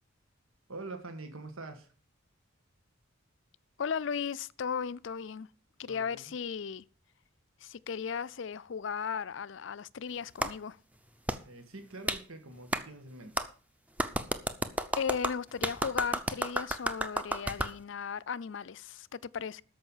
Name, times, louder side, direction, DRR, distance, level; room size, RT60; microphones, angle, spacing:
voice 1, 0.7-1.9 5.9-6.3 11.4-13.5, right 2 dB, 85° right, 1.7 m, -45 dB
voice 2, 3.8-5.5 5.8-6.8 7.6-10.8 15.0-19.6, left 6 dB, 65° left, 0.4 m, -36 dB
Clapping, 10.4-10.5 11.3-11.4 12.1-12.2 12.7-12.8 13.4-13.5 14.0-17.7, right 1 dB, 5° right, 0.6 m, -31 dB
13.5 x 5.5 x 7.2 m
head